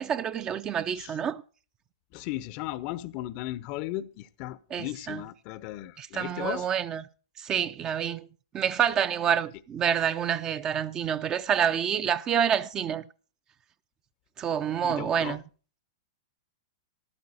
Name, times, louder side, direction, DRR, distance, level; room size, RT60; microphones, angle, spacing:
voice 1, 0.0-1.4 4.7-5.2 6.0-7.0 7.4-8.3 8.5-13.0 14.4-15.4, right 8 dB, 25° right, 0.6 m, -27 dB
voice 2, 2.1-6.7 8.9-9.0 9.5-9.6 14.8-15.4, left 15 dB, 45° left, 0.7 m, -36 dB
14.0 x 12.0 x 4.2 m
hypercardioid pair, 110°, 3 cm